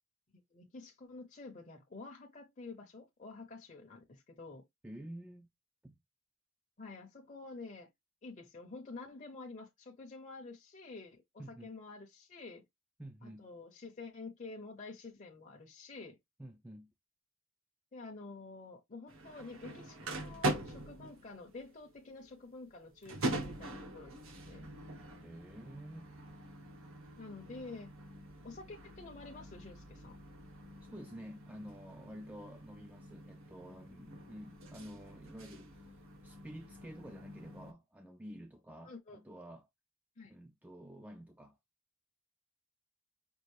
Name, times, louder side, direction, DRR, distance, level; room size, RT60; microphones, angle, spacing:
voice 1, 0.5-4.6 6.8-7.9 8.2-12.6 13.2-16.2 17.9-24.2 24.5-24.7 27.2-27.9 28.4-30.2 38.8-39.2 40.2-40.3, left 3 dB, 35° left, 0.7 m, -49 dB
voice 2, 4.8-5.5 5.8-6.0 11.4-11.7 13.0-13.5 16.4-16.9 25.2-26.1 30.8-39.7 40.3-41.6, equal, 5° right, 0.3 m, -50 dB
sound 1, 19.1-37.7, right 2 dB, 75° right, 1.1 m, -43 dB
5.3 x 2.5 x 3.1 m
head